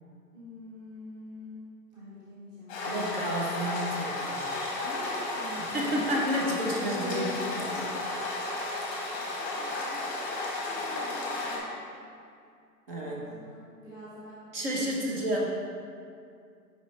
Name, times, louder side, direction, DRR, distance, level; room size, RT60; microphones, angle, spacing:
voice 1, 0.3-3.2 4.8-5.8 6.1-7.4 9.1-11.9 13.0-14.4 14.7-15.4, left 1 dB, 10° right, -10 dB, 0.8 m, -44 dB
sound 1, 2.7-11.6, left 2 dB, 15° left, 1.0 m, -33 dB
voice 2, 2.8-4.8 5.7-7.3 7.6-8.5 12.9-13.2 14.5-15.6, equal, 35° right, -2 dB, 0.9 m, -31 dB
7.3 x 5.4 x 3.2 m, 2.3 s
hypercardioid pair, 145°, 48 cm